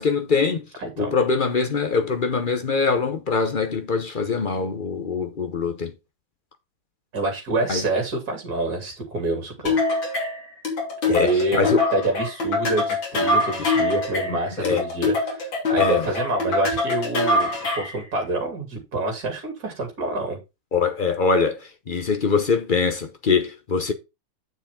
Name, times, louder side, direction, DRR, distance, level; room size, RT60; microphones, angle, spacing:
voice 1, 0.0-0.6 1.0-5.9 7.7-7.8 11.1-11.8 13.6-13.7 14.3-14.8 15.7-16.1 20.7-23.9, left 5 dB, 45° left, 0.6 m, -23 dB
voice 2, 0.8-1.2 7.1-9.8 11.0-15.4 15.7-20.4, right 2 dB, 50° right, 3.4 m, -27 dB
sound 1, 9.7-18.0, left 2 dB, 80° left, 3.5 m, -24 dB
8.1 x 7.1 x 3.6 m
omnidirectional pair, 2.1 m